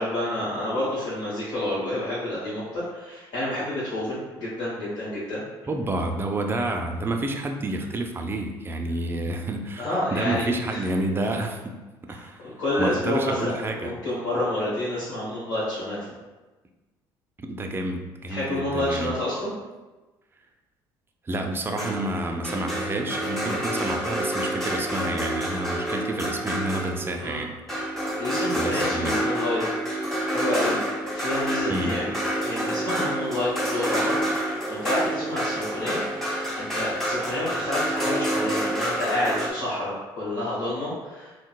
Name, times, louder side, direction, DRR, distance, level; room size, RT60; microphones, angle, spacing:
voice 1, 0.0-5.4 9.8-10.8 12.1-16.0 18.3-19.5 27.2-27.4 28.2-29.6 30.3-30.8 31.1-32.1 32.4-41.4, left 1 dB, 70° left, -10 dB, 1.1 m, -29 dB
voice 2, 5.7-11.8 12.0-12.4 12.8-14.1 17.4-19.2 21.3-27.6 28.6-29.2 31.7-32.0, right 2 dB, 20° right, 4 dB, 0.4 m, -29 dB
sound 1, 21.8-27.2 27.7-39.5, right 1 dB, 5° left, 0.7 m, -28 dB
3.7 x 2.1 x 2.3 m, 1.2 s
supercardioid pair, 70°, 11 cm